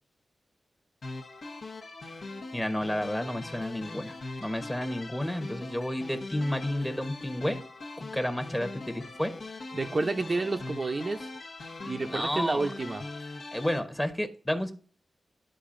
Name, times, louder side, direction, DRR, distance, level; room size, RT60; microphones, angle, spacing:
sound 1, 1.0-13.8, left 2 dB, 70° left, 1.1 m, -41 dB
voice 1, 2.5-7.6 8.0-9.3 12.0-12.7 13.5-14.7, left 1 dB, 10° left, 7 dB, 1.0 m, -31 dB
voice 2, 9.7-11.3 11.8-13.0, right 3 dB, 40° right, 6 dB, 0.6 m, -30 dB
11.5 x 3.9 x 2.5 m, 0.42 s
wide cardioid pair, 90°, 0 cm